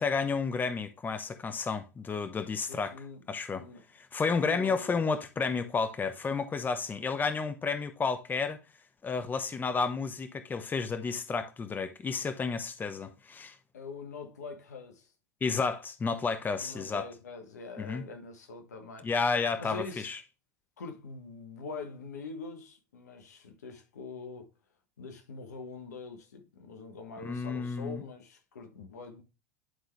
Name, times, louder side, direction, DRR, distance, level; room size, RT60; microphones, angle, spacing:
voice 1, 0.0-2.9 3.3-3.6 3.9-8.6 9.0-13.6 15.4-17.1 17.8-18.0 19.0-20.2 27.2-28.0, left 4 dB, 20° left, 0.9 m, -31 dB
voice 2, 2.7-3.2 3.6-3.8 4.4-5.0 13.7-15.1 16.6-19.1 19.6-20.1 20.8-24.5 25.0-29.2, left 4 dB, 85° left, 1.3 m, -44 dB
11.0 x 3.8 x 3.2 m
hypercardioid pair, 85°, 9 cm